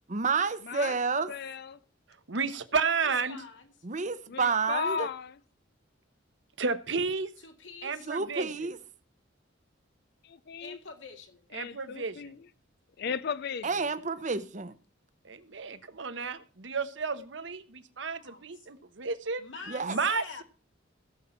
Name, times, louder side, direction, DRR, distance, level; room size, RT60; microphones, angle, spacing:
voice 1, 0.1-1.3 3.8-5.1 8.1-8.8 13.6-14.7 19.7-20.0, right 4 dB, 40° right, 0.8 m, -30 dB
voice 2, 0.6-1.0 1.3-1.8 4.3-5.3 10.2-10.8 11.5-12.4 13.0-13.9, left 6 dB, 55° left, 0.4 m, -35 dB
voice 3, 2.3-3.4 6.6-7.3 7.8-8.5 11.5-12.3 15.2-19.4 19.8-20.4, right 5 dB, 65° right, 1.0 m, -32 dB
voice 4, 3.0-3.7 7.4-8.1 10.6-11.4 18.2-18.5 19.4-20.4, left 5 dB, 70° left, 2.1 m, -46 dB
16.5 x 7.4 x 4.4 m
head